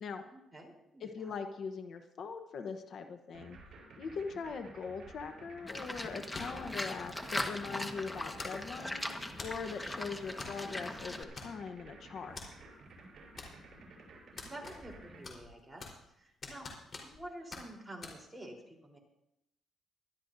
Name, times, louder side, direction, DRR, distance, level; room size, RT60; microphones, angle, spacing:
voice 1, 0.3-1.3 13.8-13.9 14.4-19.0, right 1 dB, 10° right, 0 dB, 3.8 m, -49 dB
voice 2, 1.0-3.6 4.0-12.4, left 5 dB, 60° left, 7 dB, 1.0 m, -41 dB
sound 1, 3.3-15.2, right 3 dB, 55° right, 6.4 m, -53 dB
Livestock farm animals working animals, 5.7-11.2, left 1 dB, 15° left, 1.4 m, -40 dB
sound 2, 6.3-6.7 7.4-7.6 8.4-8.8 9.4-9.7 10.4-10.6 10.9-11.0 11.4-11.8 12.4-12.5 13.4-13.8 14.4-15.0 15.2-16.1 16.4-17.2 17.5-17.6 18.0-18.2, left 4 dB, 45° left, 4.1 m, -46 dB
21.5 x 13.0 x 2.7 m, 0.85 s
cardioid pair, 90°, 0 cm